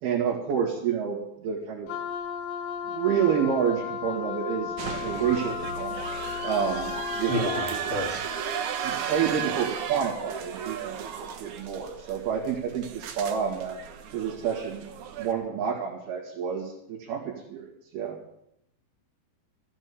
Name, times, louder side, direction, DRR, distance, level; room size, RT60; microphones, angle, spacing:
voice 1, 0.0-1.9 2.9-4.7 5.0-6.0 6.4-7.8 8.3-8.5 8.8-13.8 14.1-14.9 15.2-18.2, right 7 dB, 90° right, -4 dB, 4.1 m, -29 dB
Wind instrument woodwind instrument, 1.9-7.9, left 7 dB, 90° left, 1.4 m, -34 dB
sound 1, 4.8-15.3, right 8 dB, 65° right, 2.3 m, -35 dB
voice 2, 7.3-8.2, equal, 25° right, -5 dB, 1.6 m, -30 dB
14.5 x 8.9 x 8.4 m, 0.77 s
omnidirectional pair, 4.3 m